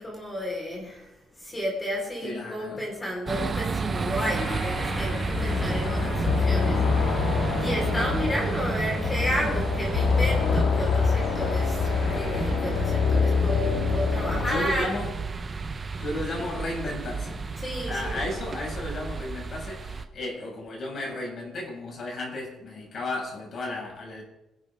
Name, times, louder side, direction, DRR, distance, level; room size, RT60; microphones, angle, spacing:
voice 1, 0.0-14.9 17.6-18.3, equal, 20° left, -2 dB, 4.8 m, -32 dB
voice 2, 2.2-2.8 14.4-15.1 16.0-17.4 17.9-24.2, left 2 dB, 45° left, -1 dB, 6.5 m, -33 dB
sound 1, 3.3-20.0, right 4 dB, 25° right, 1.1 m, -31 dB
sound 2, 4.4-14.7, left 5 dB, 75° left, 2.1 m, -26 dB
28.0 x 11.5 x 3.8 m, 0.96 s
cardioid pair, 140°, 0 cm